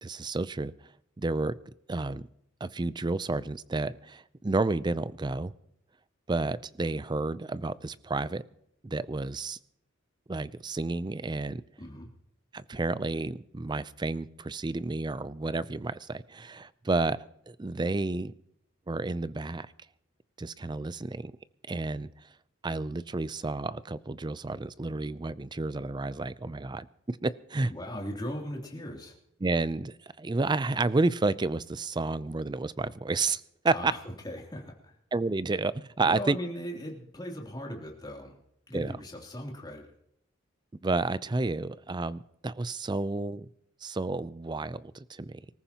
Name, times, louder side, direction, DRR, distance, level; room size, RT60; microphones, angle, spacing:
voice 1, 0.0-0.7 1.2-1.5 1.9-2.3 2.6-5.5 6.3-8.4 8.8-9.6 10.3-11.6 12.5-17.2 17.5-18.3 18.9-19.7 20.4-21.3 21.7-22.1 22.6-27.7 29.4-33.9 35.1-36.4 38.7-38.9 40.8-43.5 43.8-45.4, right 3 dB, 20° right, 16 dB, 0.5 m, -31 dB
voice 2, 11.8-12.1 27.7-29.2 33.7-34.0 34.2-34.9 36.0-38.4 38.7-39.9, equal, 20° left, 0 dB, 3.0 m, -38 dB
25.0 x 14.0 x 2.9 m, 0.73 s
head